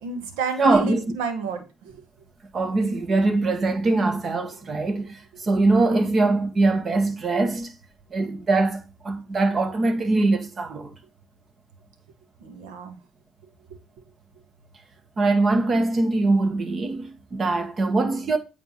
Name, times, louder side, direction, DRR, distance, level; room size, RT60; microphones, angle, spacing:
voice 1, 0.0-2.0 12.4-13.0, right 5 dB, 85° right, 1.4 m, -31 dB
voice 2, 0.6-1.0 2.5-7.7 8.1-10.9 15.2-18.4, right 3 dB, 45° right, 1.7 m, -22 dB
8.9 x 3.7 x 5.7 m
supercardioid pair, 70°, 0 cm